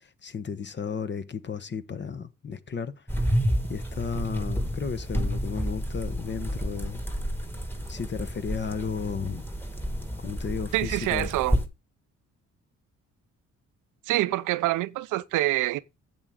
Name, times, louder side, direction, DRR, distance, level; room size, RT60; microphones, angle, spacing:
voice 1, 0.0-2.9 3.3-3.4 3.7-7.0 7.9-9.4 10.2-11.3, left 6 dB, 35° left, 1.1 m, -34 dB
sound 1, 3.1-11.7, equal, 5° left, 1.7 m, -30 dB
voice 2, 10.7-11.6 14.1-15.8, right 17 dB, 85° right, 0.6 m, -26 dB
10.5 x 7.9 x 3.6 m
cardioid pair, 90°, 30 cm